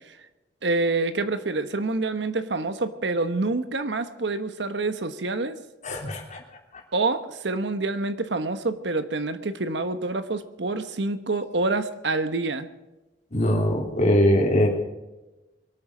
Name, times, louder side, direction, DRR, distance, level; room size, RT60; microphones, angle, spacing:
voice 1, 0.6-5.6 6.9-12.7, right 3 dB, 70° right, 11 dB, 1.1 m, -27 dB
voice 2, 5.8-6.4 13.3-14.7, equal, 45° left, 0 dB, 3.1 m, -21 dB
23.0 x 8.9 x 6.1 m, 1.1 s
head